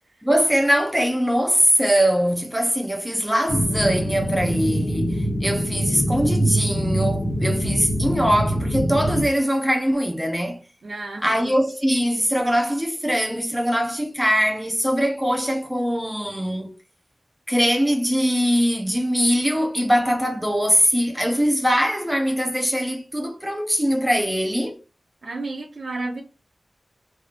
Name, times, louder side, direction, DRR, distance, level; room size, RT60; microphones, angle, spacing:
voice 1, 0.2-10.6 11.2-16.7 17.5-24.8, equal, 5° right, 0.9 m, -22 dB
sound 1, 3.5-9.2, equal, 80° left, 1.2 m, -24 dB
voice 2, 10.8-11.6 25.2-26.2, right 2 dB, 70° right, 1.2 m, -32 dB
5.0 x 3.4 x 2.5 m
wide cardioid pair, 90°, 0 cm